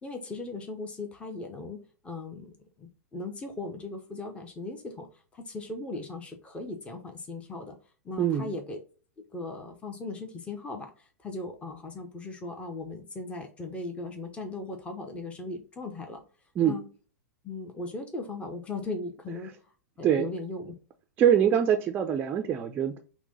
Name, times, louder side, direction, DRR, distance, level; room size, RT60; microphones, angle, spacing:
voice 1, 0.0-5.1 5.3-7.8 8.0-8.8 9.3-16.2 16.6-16.9 17.4-19.5 20.0-20.7, left 2 dB, 15° left, 4 dB, 0.8 m, -38 dB
voice 2, 8.2-8.5 16.6-16.8 20.0-20.3 21.2-23.0, right 9 dB, 25° right, 6 dB, 0.5 m, -24 dB
5.8 x 2.2 x 4.0 m, 0.38 s
figure-of-eight pair, 100°, 9 cm